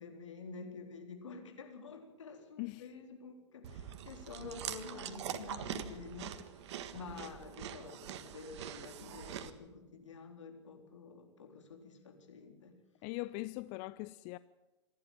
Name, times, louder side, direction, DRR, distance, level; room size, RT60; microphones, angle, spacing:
voice 1, 0.0-6.5 6.9-12.8, left 4 dB, 80° left, 3.9 m, -49 dB
Chewing mastication, 3.6-9.5, right 10 dB, 65° right, 1.6 m, -44 dB
voice 2, 13.0-14.4, left 20 dB, 45° left, 0.6 m, -41 dB
27.0 x 11.5 x 8.9 m
hypercardioid pair, 100°, 15 cm